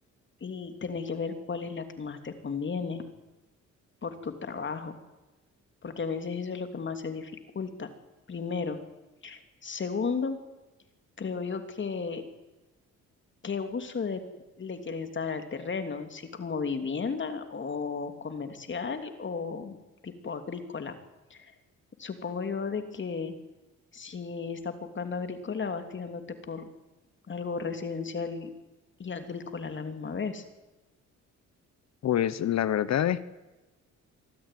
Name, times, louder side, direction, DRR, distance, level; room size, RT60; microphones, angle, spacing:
voice 1, 0.4-3.0 4.0-4.9 5.8-7.9 8.3-8.8 9.2-10.4 11.2-12.2 13.4-14.2 14.6-19.8 20.0-21.0 21.3-21.5 22.0-23.3 23.9-26.7 27.3-28.5 29.0-30.4, left 5 dB, 40° left, 8 dB, 3.1 m, -34 dB
voice 2, 32.0-33.3, left 10 dB, 60° left, 16 dB, 1.2 m, -26 dB
24.5 x 13.5 x 9.4 m, 1.1 s
cardioid pair, 90°, 30 cm